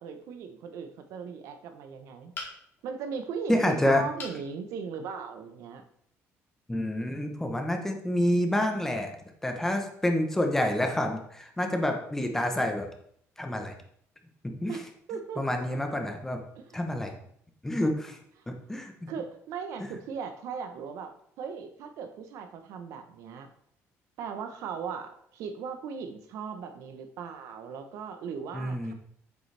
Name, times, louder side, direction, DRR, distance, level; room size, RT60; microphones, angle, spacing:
voice 1, 0.0-2.3 2.8-5.8 14.7-15.6 16.6-16.8 19.1-21.1 21.4-23.5 24.2-28.9, right 6 dB, 75° right, 7 dB, 1.0 m, -38 dB
sound 1, 2.3-2.9 4.2-4.4 5.0-5.1 5.4-5.5, left 3 dB, 40° left, 2.2 m, -40 dB
voice 2, 3.5-4.0 6.7-9.1 9.4-12.9 13.4-13.7 14.4-14.7 15.4-16.4 16.7-17.1 17.6-18.2 18.5-19.1 28.5-28.9, left 1 dB, 10° left, 4 dB, 0.9 m, -28 dB
8.5 x 6.9 x 3.4 m, 0.66 s
cardioid pair, 160°, 5 cm